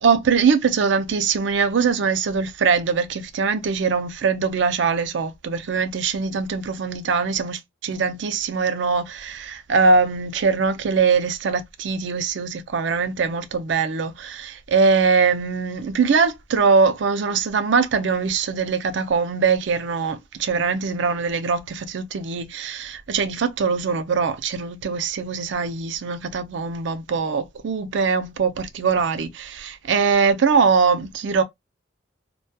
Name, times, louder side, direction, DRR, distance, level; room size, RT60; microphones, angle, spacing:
voice 1, 0.0-31.4, right 5 dB, 70° right, 0.4 m, -22 dB
2.2 x 2.2 x 2.6 m
head